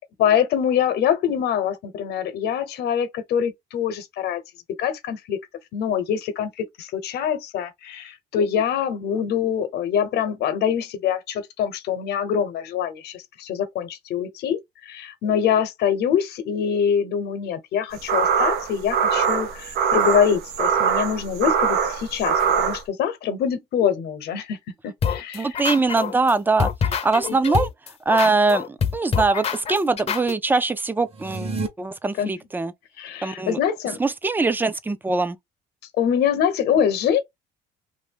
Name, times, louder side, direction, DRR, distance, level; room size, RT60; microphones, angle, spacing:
voice 1, 0.2-4.4 4.8-5.4 5.7-24.6 24.8-25.5 27.3-27.4 32.2-32.4 33.0-34.0 36.0-37.2, left 8 dB, 75° left, 0.9 m, -24 dB
sound 1, 17.9-22.8, right 7 dB, 85° right, 0.7 m, -22 dB
sound 2, 25.0-26.3 26.6-30.3, left 7 dB, 40° left, 0.6 m, -25 dB
voice 2, 25.3-26.7 27.0-27.7 28.1-32.7 33.2-33.6 34.0-35.4, right 3 dB, 10° right, 0.4 m, -22 dB
sound 3, 31.1-31.7, right 3 dB, 35° right, 0.9 m, -29 dB
2.7 x 2.5 x 3.5 m
cardioid pair, 110°, 17 cm